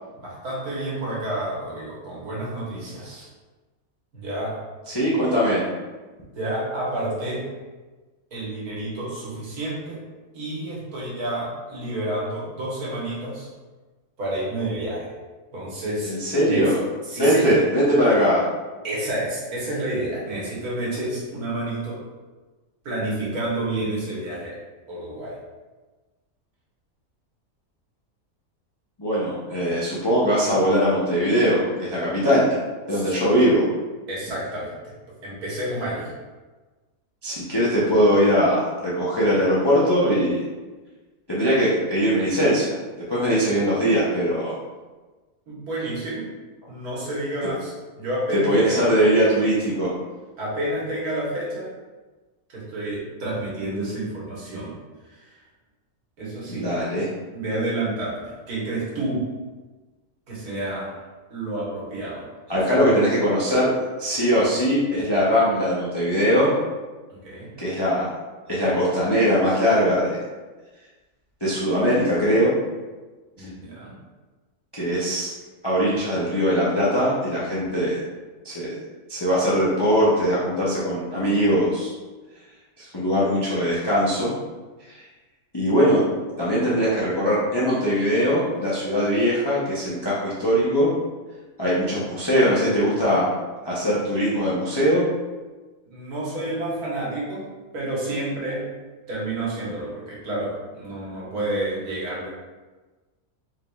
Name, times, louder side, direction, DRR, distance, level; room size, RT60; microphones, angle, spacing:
voice 1, 0.2-3.3 4.1-4.6 6.4-7.4 8.3-10.0 10.3-13.5 14.2-15.1 15.5-16.2 16.4-16.7 17.1-17.6 18.8-22.0 22.8-24.6 24.9-25.4 32.9-33.2 34.1-34.7 35.2-36.1 45.5-46.3 46.7-48.8 50.4-51.7 52.5-54.7 55.1-55.4 56.2-56.7 57.3-59.2 60.3-60.9 61.3-62.2 62.7-63.0 67.1-67.5 73.4-73.9 95.9-97.4 97.7-98.7 99.1-102.3, right 1 dB, 80° right, -6 dB, 1.8 m, -29 dB
voice 2, 4.9-5.6 16.0-16.8 17.2-18.4 29.0-32.5 32.9-33.7 37.2-40.4 41.3-42.8 43.1-44.5 48.5-49.9 56.5-57.1 62.5-63.7 64.0-66.5 67.6-68.1 68.5-70.2 71.4-72.5 73.4-73.5 74.7-75.3 75.6-78.0 78.4-78.7 79.1-81.9 82.8-84.3 84.9-85.0 85.5-86.0 86.4-90.9 91.6-93.3 93.6-95.0, equal, 25° left, -8 dB, 0.5 m, -21 dB
4.6 x 3.6 x 2.3 m, 1.3 s
omnidirectional pair, 1.6 m